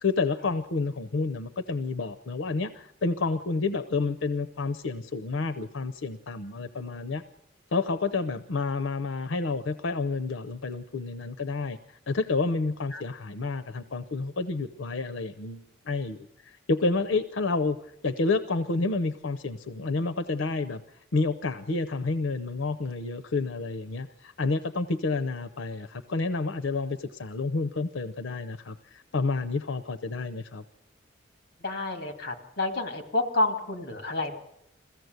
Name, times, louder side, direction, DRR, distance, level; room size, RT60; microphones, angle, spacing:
voice 1, 0.0-7.2 7.7-11.8 12.1-17.8 18.0-20.8 21.1-30.6, left 3 dB, 90° left, 11 dB, 0.7 m, -29 dB
voice 2, 31.6-34.4, left 2 dB, 55° left, 6 dB, 2.5 m, -29 dB
21.5 x 15.5 x 8.0 m, 0.79 s
head